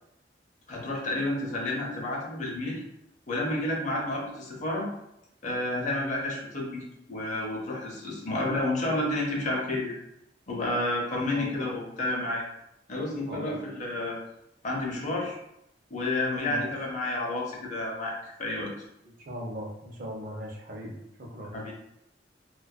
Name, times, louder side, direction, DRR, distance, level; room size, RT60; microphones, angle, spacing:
voice 1, 0.7-2.8 3.3-4.9 5.4-9.9 10.5-12.4 12.9-14.2 14.6-15.4 15.9-18.9 21.5-21.7, left 1 dB, 45° left, -2 dB, 0.6 m, -30 dB
voice 2, 11.3-11.6 13.3-13.6 16.4-16.7 19.3-21.5, equal, 50° right, 0 dB, 0.5 m, -38 dB
2.6 x 2.2 x 2.2 m, 0.80 s
head